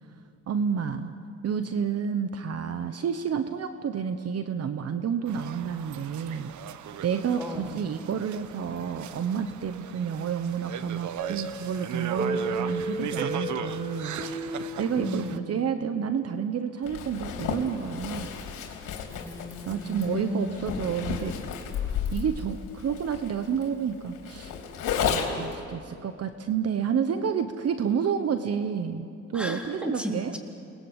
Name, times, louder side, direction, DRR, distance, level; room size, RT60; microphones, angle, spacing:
voice 1, 0.5-1.1 1.4-6.5 7.0-14.2 14.8-18.3 19.7-21.3 22.1-24.5 24.9-29.1 29.3-30.3, right 7 dB, 55° right, 9 dB, 1.2 m, -30 dB
sound 1, 5.3-15.4, right 9 dB, 75° right, 1.1 m, -38 dB
voice 2, 7.4-7.7 14.9-15.4 19.1-20.7 29.3-30.4, equal, 5° right, 1 dB, 3.9 m, -34 dB
sound 2, 11.2-15.9, right 1 dB, 30° right, 3.6 m, -34 dB
Zipper (clothing), 16.8-25.5, left 7 dB, 90° left, 3.5 m, -33 dB
28.5 x 20.5 x 8.3 m, 2.5 s
cardioid pair, 90°, 30 cm